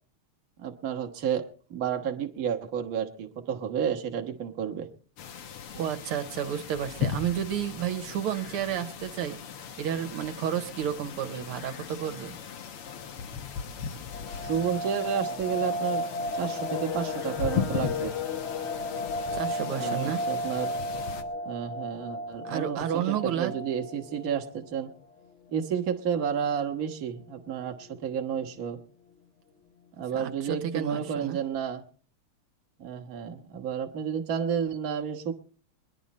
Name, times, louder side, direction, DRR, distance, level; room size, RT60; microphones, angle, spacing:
voice 1, 0.6-4.9 14.4-16.1 16.4-18.1 19.6-20.8 21.4-24.9 25.5-28.8 30.0-31.8 32.8-35.3, right 8 dB, 45° right, 5 dB, 1.5 m, -31 dB
sound 1, 5.2-21.2, left 7 dB, 85° left, 2.2 m, -38 dB
voice 2, 5.7-9.4 9.8-12.4 19.3-20.3 22.4-23.5 30.1-31.4, right 9 dB, 80° right, 8 dB, 1.9 m, -31 dB
sound 2, 14.1-24.9 25.2-25.3 25.7-25.8 26.3-26.7 27.2-27.3 27.5-28.0 28.3-28.4, left 2 dB, 70° left, 0.6 m, -34 dB
21.5 x 11.0 x 4.2 m, 0.41 s
omnidirectional pair, 2.4 m